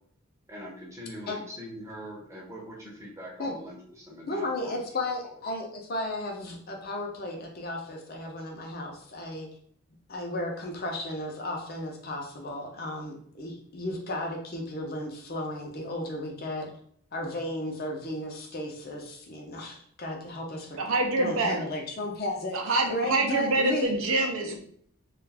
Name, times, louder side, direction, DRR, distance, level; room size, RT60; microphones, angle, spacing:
voice 1, 0.5-4.7 5.3-5.4, equal, 15° right, -3 dB, 0.7 m, -42 dB
voice 2, 4.3-9.5 10.1-16.7 17.1-20.8 21.2-23.9, left 1 dB, 45° left, 1 dB, 0.6 m, -34 dB
voice 3, 20.8-21.6 22.5-24.6, right 2 dB, 70° right, 4 dB, 0.5 m, -26 dB
2.4 x 2.3 x 3.3 m, 0.63 s
head